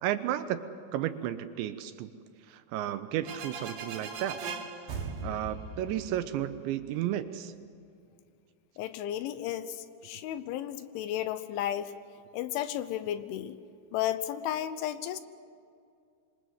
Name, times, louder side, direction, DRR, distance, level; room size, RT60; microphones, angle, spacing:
voice 1, 0.0-0.7 0.9-2.1 2.5-4.4 5.2-7.5, right 12 dB, 80° right, 10 dB, 2.8 m, -33 dB
sound 1, 3.2-6.9, right 4 dB, 55° right, 3.3 m, -39 dB
voice 2, 8.8-11.9 12.3-13.6 13.9-15.2, left 11 dB, 80° left, 12 dB, 3.2 m, -33 dB
27.0 x 23.5 x 7.8 m, 2.4 s
omnidirectional pair, 5.7 m